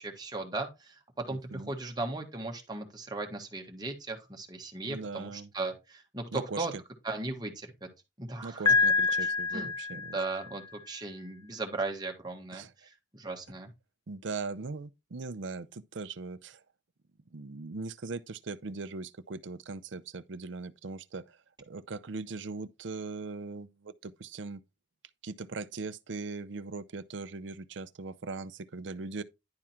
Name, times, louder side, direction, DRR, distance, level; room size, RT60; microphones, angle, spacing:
voice 1, 0.0-6.7 7.0-7.7 8.2-8.6 9.2-13.7, right 2 dB, 20° right, 1.6 m, -37 dB
voice 2, 1.3-1.7 4.9-5.5 6.3-6.7 8.4-10.2 12.5-12.7 14.1-16.6 17.3-24.6 25.2-29.2, right 4 dB, 80° right, 0.6 m, -40 dB
Piano, 8.7-10.6, left 4 dB, 20° left, 0.4 m, -27 dB
10.5 x 3.7 x 4.3 m
head